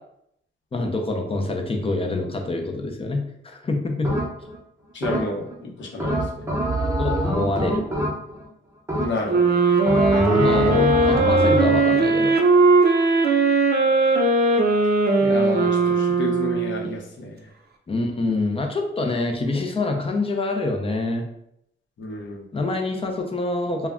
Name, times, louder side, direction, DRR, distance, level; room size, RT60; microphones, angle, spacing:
voice 1, 0.7-4.1 7.0-7.8 10.3-12.3 17.9-21.2 22.5-23.9, left 2 dB, 30° left, 3 dB, 0.5 m, -26 dB
sound 1, 4.0-4.6 5.0-5.6 6.0-8.5 8.9-9.4 9.9-11.8, equal, 15° right, 0.7 m, -24 dB
voice 2, 4.9-6.5 9.0-9.6 15.2-17.5 22.0-22.4, left 2 dB, 65° left, -1 dB, 0.7 m, -31 dB
sound 2, 9.3-17.0, right 3 dB, 50° right, 0.4 m, -19 dB
2.3 x 2.1 x 3.5 m, 0.75 s
wide cardioid pair, 110°, 20 cm